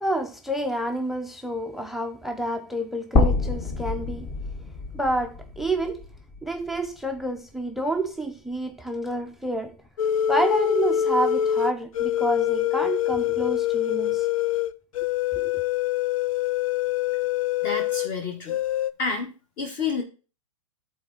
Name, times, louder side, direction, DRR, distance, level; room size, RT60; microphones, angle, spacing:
voice 1, 0.0-4.3 4.9-6.0 6.4-9.8 10.3-14.3 15.4-15.5, right 1 dB, ahead, 0.4 m, -29 dB
sound 1, 3.2-7.3 7.7-7.8 9.2-9.3, left 3 dB, 20° left, 0.8 m, -27 dB
sound 2, 10.0-18.1 18.5-18.9, left 11 dB, 90° left, 0.4 m, -25 dB
voice 2, 17.6-18.6 19.0-20.0, left 5 dB, 40° left, 1.3 m, -29 dB
11.5 x 4.1 x 3.7 m
hypercardioid pair, 130°, 17 cm